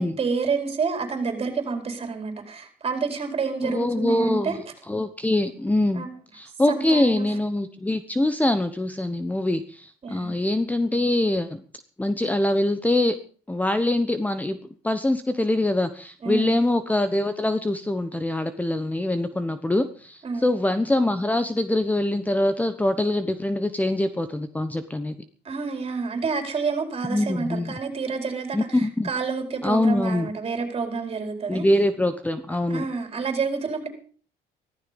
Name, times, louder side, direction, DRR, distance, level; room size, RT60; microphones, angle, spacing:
voice 1, 0.0-4.6 5.9-6.1 6.7-7.3 10.0-10.3 16.2-16.6 20.2-20.5 25.4-31.6 32.7-33.9, right 5 dB, 35° right, 5 dB, 4.7 m, -28 dB
voice 2, 3.6-6.0 6.3-11.6 12.0-13.2 13.5-14.6 14.8-25.2 27.1-27.8 28.5-29.1 29.6-30.3 31.5-32.9, left 1 dB, 10° left, 11 dB, 1.1 m, -24 dB
15.5 x 14.0 x 5.4 m, 0.44 s
cardioid pair, 110°, 17 cm